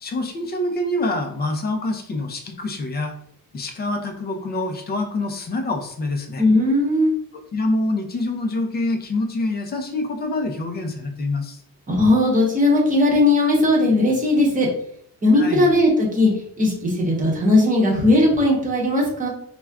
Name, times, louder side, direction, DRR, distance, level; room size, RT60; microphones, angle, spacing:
voice 1, 0.0-3.1 3.5-6.4 7.3-11.6 15.4-15.7, left 2 dB, 25° left, 4 dB, 0.4 m, -26 dB
voice 2, 6.4-7.1 11.9-14.7 15.2-16.3 16.6-19.3, left 1 dB, 20° right, -3 dB, 0.8 m, -18 dB
2.4 x 2.2 x 3.4 m, 0.68 s
cardioid pair, 160°, 39 cm